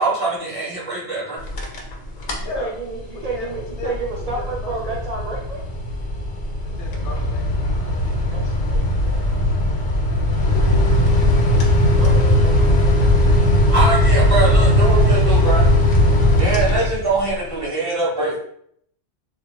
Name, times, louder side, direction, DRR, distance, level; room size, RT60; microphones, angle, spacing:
voice 1, 0.0-1.5 13.7-15.7 16.4-18.4, right 3 dB, 35° right, -6 dB, 0.7 m, -22 dB
voice 2, 1.0-2.7 3.3-3.9 4.4-4.9 6.6-8.6, left 2 dB, 75° left, 1 dB, 0.9 m, -39 dB
sound 1, 1.4-1.9 2.2-2.6 3.0-17.3, left 1 dB, 60° left, 0.5 m, -18 dB
voice 3, 2.6-5.6 8.3-9.2 12.0-13.0, right 3 dB, 75° right, -3 dB, 0.3 m, -31 dB
2.3 x 2.0 x 3.1 m, 0.68 s
omnidirectional pair, 1.2 m